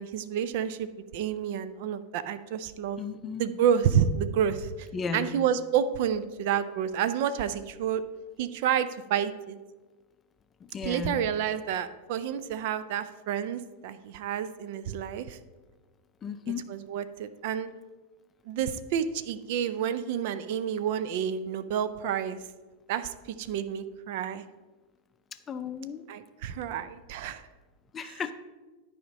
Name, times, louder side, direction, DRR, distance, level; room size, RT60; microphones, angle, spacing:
voice 1, 0.0-3.0 3.4-4.9 5.1-8.0 8.4-9.6 10.8-15.4 16.7-17.7 18.5-22.4 22.9-24.4 26.1-27.4 28.0-28.2, right 8 dB, 50° right, 13 dB, 0.4 m, -29 dB
voice 2, 3.0-3.5 4.9-5.4 10.7-11.2 16.2-16.6 25.5-26.0 27.9-28.3, left 6 dB, 20° left, 10 dB, 0.5 m, -34 dB
11.0 x 5.0 x 4.2 m, 1.2 s
figure-of-eight pair, 90°, 0 cm